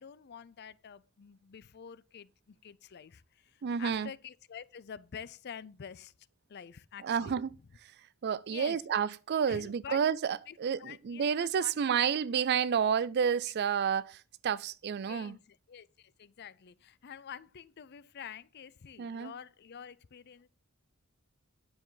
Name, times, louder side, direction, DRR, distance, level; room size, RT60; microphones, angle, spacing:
voice 1, 0.0-6.1 6.5-7.4 8.5-8.9 9.5-10.0 10.5-11.3 11.6-11.8 15.0-20.5, left 7 dB, 50° left, 0.5 m, -47 dB
voice 2, 3.6-4.1 7.0-7.5 8.2-15.4 19.0-19.3, right 7 dB, 50° right, 0.4 m, -30 dB
9.9 x 6.9 x 3.9 m
head